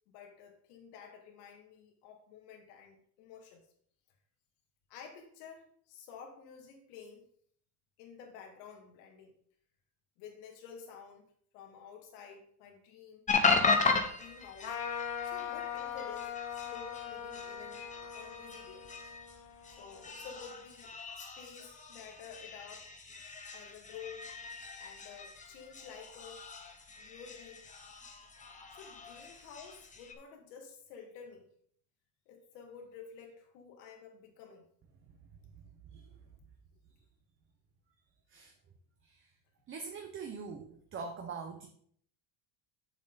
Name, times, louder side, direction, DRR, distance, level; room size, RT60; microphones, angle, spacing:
voice 1, 0.1-3.6 4.9-7.3 8.0-9.3 10.2-11.3 11.5-13.7 14.1-14.8 15.2-17.9 18.1-18.8 19.7-22.9 23.5-24.3 24.8-26.5 27.0-27.7 28.7-31.5 32.3-34.7, left 6 dB, 85° left, 2 dB, 2.3 m, -51 dB
sound 1, 13.3-30.1, left 4 dB, 15° left, 0.9 m, -36 dB
Trumpet, 14.6-20.4, left 9 dB, 60° left, 1.7 m, -41 dB
voice 2, 39.7-41.7, right 5 dB, 30° right, 3 dB, 0.8 m, -43 dB
7.7 x 7.1 x 4.0 m, 0.62 s
cardioid pair, 145°, 45 cm